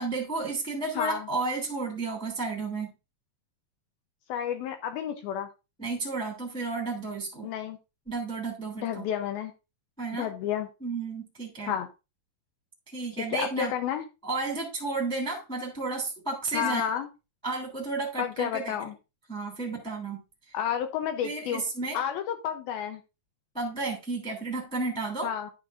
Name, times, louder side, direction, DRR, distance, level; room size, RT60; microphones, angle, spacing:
voice 1, 0.0-2.9 5.8-7.5 8.1-9.1 10.0-10.3 10.8-11.7 12.9-13.7 14.2-16.8 17.4-18.8 19.3-20.2 21.2-22.0 23.5-25.3, right 3 dB, ahead, -1 dB, 1.9 m, -32 dB
voice 2, 0.9-1.3 4.3-5.5 7.4-7.8 8.8-9.5 10.1-10.7 11.7-11.9 13.3-14.0 16.5-17.1 18.2-19.0 20.5-21.6 21.9-23.0 25.2-25.5, left 9 dB, 80° left, 6 dB, 2.5 m, -31 dB
11.5 x 6.6 x 2.5 m, 0.27 s
omnidirectional pair, 4.6 m